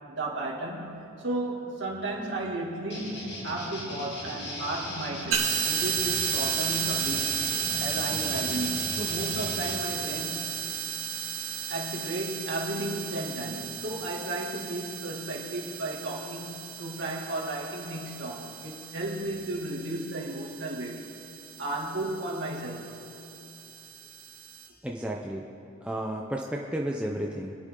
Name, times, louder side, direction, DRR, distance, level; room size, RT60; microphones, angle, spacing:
voice 1, 0.1-7.3 7.8-10.5 11.7-21.1 21.6-22.9, right 1 dB, 55° right, -3 dB, 2.5 m, -34 dB
sound 1, 2.9-9.8, left 1 dB, 55° left, 2.2 m, -38 dB
sound 2, 5.3-24.7, right 7 dB, 75° right, 1.9 m, -34 dB
voice 2, 24.8-25.4 25.8-27.5, right 1 dB, 5° right, -1 dB, 0.6 m, -32 dB
27.5 x 9.5 x 3.9 m, 2.7 s
head